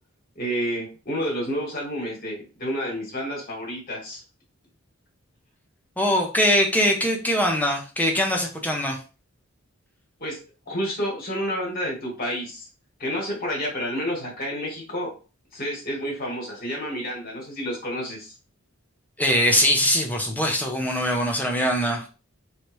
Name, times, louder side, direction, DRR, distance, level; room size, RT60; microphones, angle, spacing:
voice 1, 0.4-4.2 10.2-10.4 10.7-12.7 13.0-15.1 15.5-18.3, equal, 45° left, -2 dB, 1.9 m, -29 dB
voice 2, 6.0-9.0 19.2-22.1, equal, 10° left, 1 dB, 0.8 m, -22 dB
3.9 x 3.3 x 3.1 m, 0.34 s
head